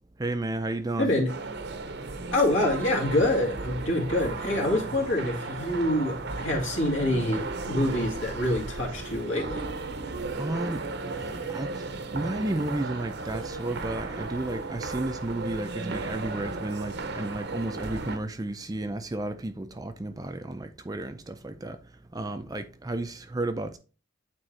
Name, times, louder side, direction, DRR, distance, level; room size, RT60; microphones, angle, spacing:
voice 1, 0.2-1.1 10.4-10.8 11.5-11.9 12.1-21.8 22.1-23.8, right 2 dB, 20° right, 0.4 m, -32 dB
voice 2, 1.0-1.3 2.3-9.6, left 1 dB, 65° left, 2.1 m, -26 dB
sound 1, 1.3-18.2, right 3 dB, 55° right, 0.7 m, -35 dB
8.8 x 3.8 x 3.2 m
head